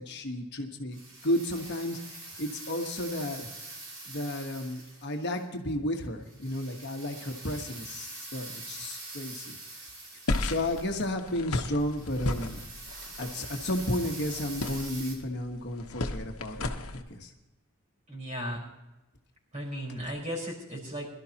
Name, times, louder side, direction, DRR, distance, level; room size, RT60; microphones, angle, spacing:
voice 1, 0.0-3.5 4.1-9.9 10.4-12.6 13.2-17.3, left 1 dB, 50° left, 3 dB, 1.3 m, -33 dB
sound 1, 0.9-5.4 6.2-15.1, right 2 dB, 85° right, 4.9 m, -44 dB
sound 2, 10.3-17.0, left 2 dB, 80° left, 1.1 m, -35 dB
voice 2, 18.1-18.6 19.5-21.1, equal, 35° right, -2 dB, 4.6 m, -35 dB
22.5 x 12.5 x 2.9 m, 1.0 s
head